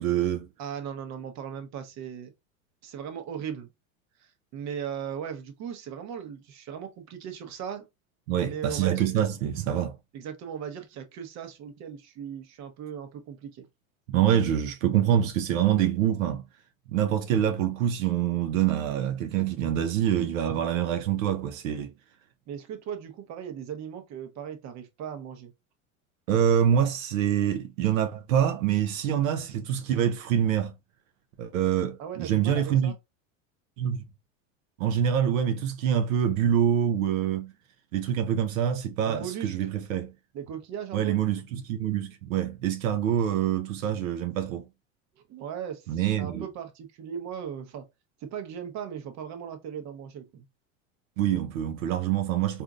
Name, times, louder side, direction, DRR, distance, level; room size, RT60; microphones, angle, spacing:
voice 1, 0.0-0.5 8.3-10.0 14.1-16.4 16.9-21.9 26.3-30.7 31.4-32.9 33.8-34.0 34.8-37.5 37.9-40.1 40.9-44.7 45.9-46.5 51.2-52.6, right 9 dB, 80° right, 0.7 m, -25 dB
voice 2, 0.6-2.3 2.8-3.7 4.2-7.9 8.4-9.1 10.1-13.7 22.5-25.5 32.0-33.0 39.0-39.6 40.3-41.1 45.3-47.9 48.2-50.5, right 8 dB, 45° right, 0.9 m, -38 dB
3.7 x 2.6 x 2.4 m
supercardioid pair, 110°, 40 cm